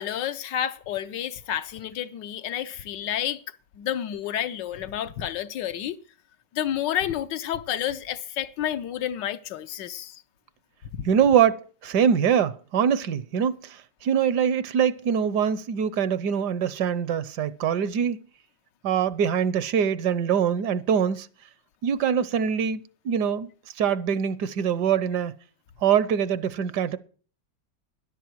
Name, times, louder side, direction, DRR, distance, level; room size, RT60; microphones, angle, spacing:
voice 1, 0.0-3.4 3.8-6.0 6.5-10.2 10.9-11.1, left 10 dB, 80° left, 1.5 m, -30 dB
voice 2, 11.0-13.8 14.0-18.2 18.8-21.3 21.8-23.5 23.8-25.3 25.8-27.0, right 8 dB, 75° right, 1.3 m, -23 dB
13.0 x 11.0 x 4.6 m
omnidirectional pair, 1.9 m